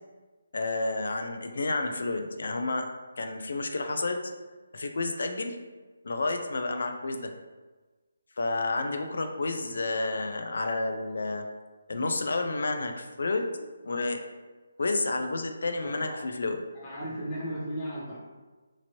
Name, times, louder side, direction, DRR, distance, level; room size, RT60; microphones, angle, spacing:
voice 1, 0.5-2.9 3.2-4.2 4.7-5.6 6.0-7.3 8.4-11.5 11.9-13.5 13.8-14.2 14.8-16.6, left 3 dB, 70° left, 6 dB, 0.4 m, -30 dB
voice 2, 15.8-16.2 16.7-18.2, equal, 15° left, -7 dB, 0.8 m, -35 dB
2.9 x 2.6 x 2.8 m, 1.3 s
hypercardioid pair, 165°, 0 cm